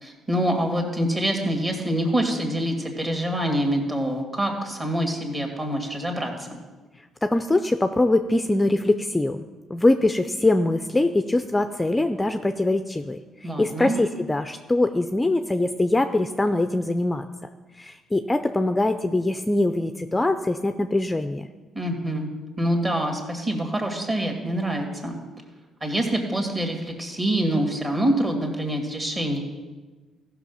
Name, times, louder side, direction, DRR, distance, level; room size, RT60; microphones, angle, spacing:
voice 1, 0.0-6.5 13.4-14.0 21.7-22.3 22.6-25.2 25.8-29.4, right 1 dB, 25° right, 3 dB, 2.2 m, -25 dB
voice 2, 7.2-17.2 17.8-21.5, left 2 dB, 15° left, 8 dB, 0.5 m, -23 dB
14.5 x 6.0 x 5.6 m, 1.3 s
cardioid pair, 85°, 0 cm